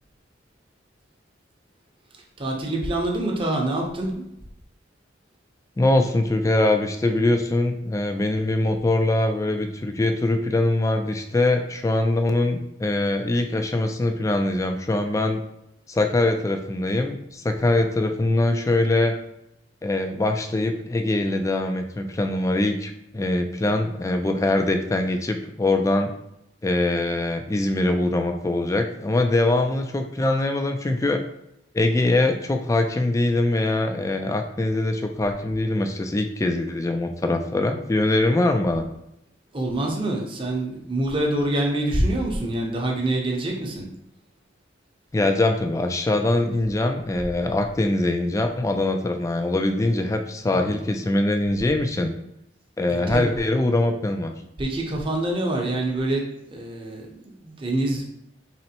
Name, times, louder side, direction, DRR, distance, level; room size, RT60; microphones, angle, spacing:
voice 1, 2.1-4.3 39.5-43.9 46.6-46.7 50.4-51.2 52.9-53.3 54.3-58.1, right 1 dB, 25° right, 0 dB, 0.7 m, -26 dB
voice 2, 5.8-15.4 15.9-19.1 19.8-26.1 26.6-31.2 31.7-38.8 45.1-52.1 52.8-54.3, left 2 dB, 15° left, 5 dB, 0.3 m, -23 dB
4.2 x 3.1 x 2.8 m, 0.82 s
head